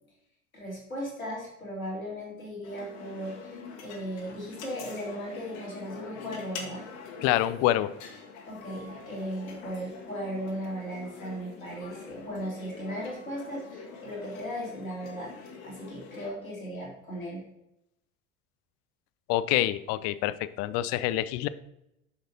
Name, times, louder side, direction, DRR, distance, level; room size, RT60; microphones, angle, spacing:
voice 1, 0.5-3.6 3.8-6.9 8.5-15.3 15.6-17.4, equal, 90° left, -5 dB, 2.6 m, -37 dB
sound 1, 2.6-16.3, left 5 dB, 55° left, 1.5 m, -44 dB
voice 2, 7.2-7.9 19.3-21.5, left 14 dB, 40° left, 16 dB, 0.5 m, -26 dB
9.3 x 6.5 x 2.9 m, 0.84 s
figure-of-eight pair, 70°, 40 cm